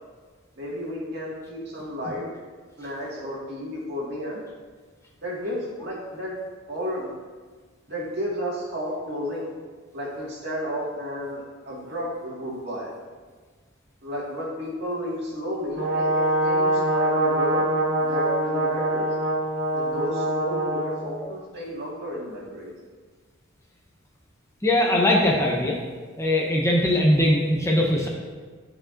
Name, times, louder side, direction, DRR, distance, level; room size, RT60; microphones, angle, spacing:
voice 1, 0.6-2.3 2.8-4.4 5.2-6.4 6.7-7.1 7.9-9.5 9.9-12.9 14.0-17.6 18.0-19.1 19.7-22.7, equal, 55° right, -4 dB, 1.8 m, -32 dB
Brass instrument, 15.8-20.9, right 1 dB, 75° right, 1.7 m, -24 dB
voice 2, 24.6-25.8 26.2-28.1, left 1 dB, 15° left, -2 dB, 0.7 m, -20 dB
11.5 x 4.8 x 2.5 m, 1.5 s
head